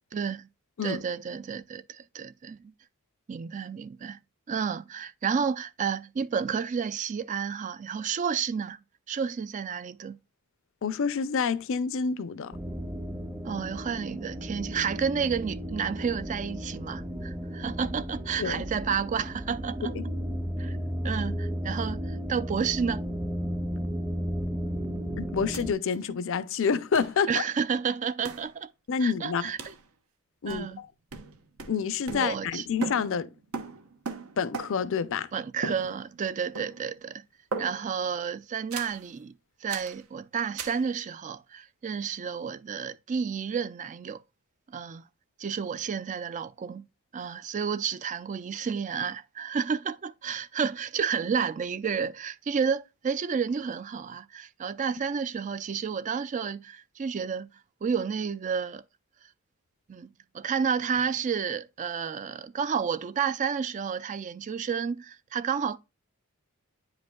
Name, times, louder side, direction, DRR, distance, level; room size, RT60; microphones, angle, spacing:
voice 1, 0.1-0.5 0.8-2.7 3.3-4.2 4.5-8.8 9.1-10.1 13.4-20.0 20.6-20.8 21.0-23.0 27.3-28.7 29.0-29.7 30.5-30.8 32.1-32.7 35.3-37.2 37.6-39.3 39.6-44.2 44.7-45.0 45.4-46.8 47.1-57.5 57.8-58.8 59.9-60.1 60.3-65.8, right 6 dB, 35° right, 0.3 m, -31 dB
voice 2, 10.8-12.6 18.4-18.6 25.2-27.4 28.9-29.5 30.4-30.9 31.7-33.3 34.4-35.3, left 6 dB, 65° left, 0.5 m, -28 dB
sound 1, 12.5-25.7, equal, 10° right, 0.7 m, -34 dB
sound 2, 25.5-25.6 25.9-26.0 26.9-27.2 28.2-28.5 29.6-29.8 30.5-30.8 31.1-32.6 32.8-35.0 35.6-36.3 36.6-37.0 37.5-38.0 38.7-39.0 39.7-40.0 40.6-40.8, right 4 dB, 75° right, 0.9 m, -38 dB
9.3 x 5.2 x 2.2 m
head